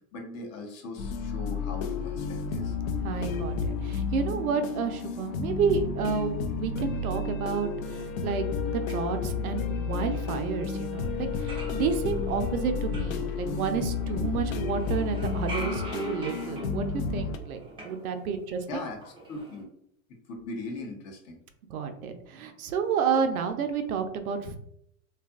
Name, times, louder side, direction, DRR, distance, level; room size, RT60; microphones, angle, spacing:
voice 1, 0.1-2.7 18.7-19.0 19.3-19.7 20.3-21.4, left 2 dB, 40° left, 2 dB, 0.7 m, -39 dB
sound 1, 1.0-17.4, left 5 dB, 70° left, 0.5 m, -31 dB
voice 2, 3.0-18.8 21.7-24.6, right 6 dB, 90° right, 7 dB, 0.5 m, -30 dB
sound 2, 10.8-10.9 11.2-14.3 14.7-18.6 18.9-19.6, right 1 dB, 15° right, 0.4 m, -43 dB
2.7 x 2.4 x 2.3 m, 0.72 s
hypercardioid pair, 105°, 42 cm